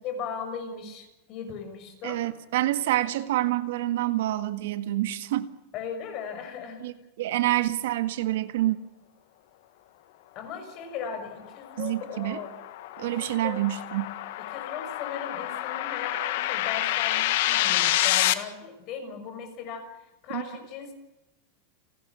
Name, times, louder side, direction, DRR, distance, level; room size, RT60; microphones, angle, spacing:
voice 1, 0.0-2.2 5.7-6.8 10.3-12.5 13.0-13.6 14.5-20.9, left 6 dB, 40° left, 5.9 m, -37 dB
voice 2, 2.0-5.5 6.8-8.8 11.8-12.4 13.0-14.1 20.3-20.4, right 15 dB, 75° right, 1.8 m, -27 dB
sound 1, 11.5-18.3, left 15 dB, 65° left, 1.7 m, -28 dB
30.0 x 12.0 x 8.4 m
supercardioid pair, 155°, 0 cm